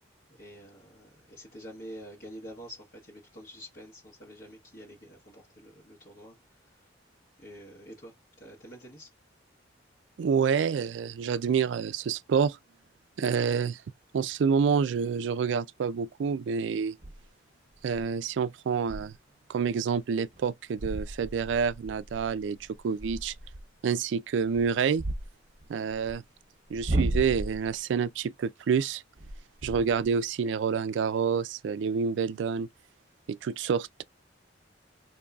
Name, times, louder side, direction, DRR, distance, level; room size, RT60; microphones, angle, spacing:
voice 1, 0.3-6.9 7.4-9.1, equal, 50° left, 1.2 m, -47 dB
voice 2, 10.2-12.6 13.2-13.8 14.1-17.0 17.8-19.1 19.5-22.6 22.8-23.3 23.8-25.0 25.7-26.2 26.7-29.0 29.6-32.7 33.3-34.0, right 6 dB, 75° right, 0.3 m, -28 dB
sound 1, 13.2-13.3 17.0-17.3 17.7-18.0 18.4-18.5 18.8-19.1 19.6-19.8 20.3-20.4 20.8-23.7 24.4-26.1 26.7-27.8 29.2-30.2, right 1 dB, 45° right, 0.8 m, -35 dB
3.8 x 2.7 x 2.3 m
head